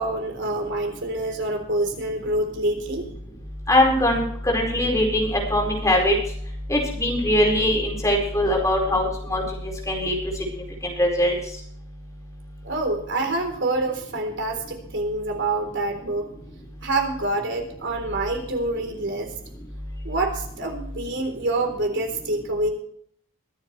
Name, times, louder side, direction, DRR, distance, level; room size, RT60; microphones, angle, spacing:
voice 1, 0.0-3.1 12.6-16.3 16.8-19.3 20.0-22.7, right 2 dB, 60° right, 4 dB, 3.8 m, -26 dB
voice 2, 3.7-6.1 6.7-9.4 9.9-10.1 10.8-11.4, left 1 dB, 15° left, 0 dB, 4.8 m, -21 dB
23.0 x 10.0 x 3.3 m, 0.65 s
head